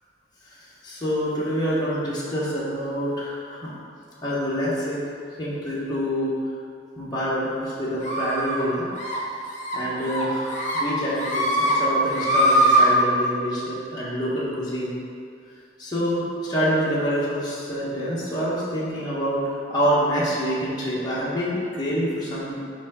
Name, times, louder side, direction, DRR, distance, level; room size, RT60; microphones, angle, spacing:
voice 1, 0.5-3.7 4.2-5.1 5.4-6.3 7.0-8.9 9.7-14.9 15.8-22.6, equal, 25° left, -9 dB, 1.2 m, -26 dB
sound 1, 8.0-8.6 9.0-9.2 9.5-9.8 10.1-10.8 11.1-11.7 12.1-12.9, right 1 dB, 40° left, 1.0 m, -21 dB
5.2 x 5.1 x 3.7 m, 2.3 s
head